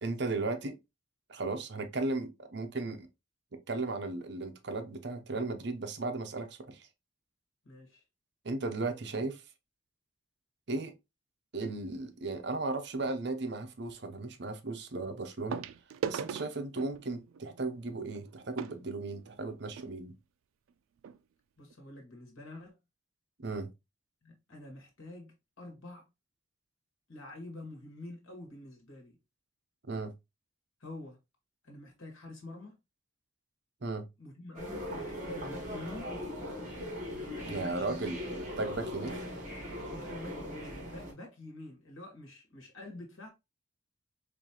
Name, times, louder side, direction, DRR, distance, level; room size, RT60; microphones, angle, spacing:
voice 1, 0.0-0.8 1.3-3.1 3.7-6.9 8.4-9.4 10.7-10.9 11.5-15.6 16.1-20.2 23.4-23.7 29.8-30.1 33.8-34.1 37.5-39.2, right 3 dB, 55° right, 0.7 m, -36 dB
voice 2, 7.6-8.0 21.6-22.8 24.2-26.1 27.1-29.2 30.8-31.2 31.6-32.8 34.2-36.2 37.1-38.0 39.9-43.3, left 1 dB, 90° left, 1.8 m, -47 dB
sound 1, 11.9-12.2 13.9-14.0 15.5-19.9 20.7-20.8 21.0-21.2 21.7-21.8, right 6 dB, 85° right, 0.3 m, -41 dB
sound 2, 34.5-41.1, left 1 dB, 40° right, 1.5 m, -40 dB
4.3 x 3.1 x 2.8 m
head